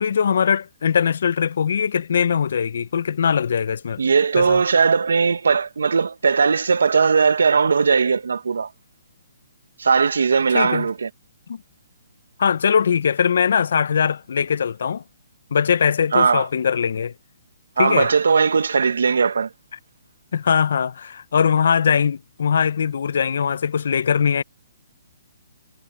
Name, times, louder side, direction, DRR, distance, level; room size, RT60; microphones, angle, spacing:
voice 1, 0.0-4.0 4.4-4.6 10.5-10.9 11.5-11.6 12.4-15.0 15.5-17.1 17.8-18.1 20.3-24.4, left 7 dB, 65° left, 0.7 m, -21 dB
voice 2, 4.0-8.7 9.8-11.1 16.1-16.5 17.8-19.5, right 5 dB, 80° right, 1.5 m, -18 dB
hypercardioid pair, 150°, 0 cm